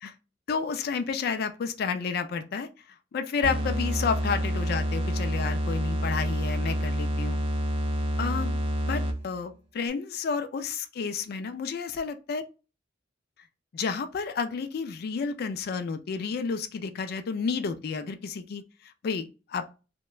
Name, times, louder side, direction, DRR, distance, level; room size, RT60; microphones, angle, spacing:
voice 1, 0.5-2.7 3.1-7.4 8.2-8.5 8.9-12.4 13.7-19.6, left 5 dB, 55° left, 0.3 m, -31 dB
sound 1, 3.4-9.3, equal, 30° right, 0.4 m, -28 dB
2.9 x 2.1 x 2.3 m
head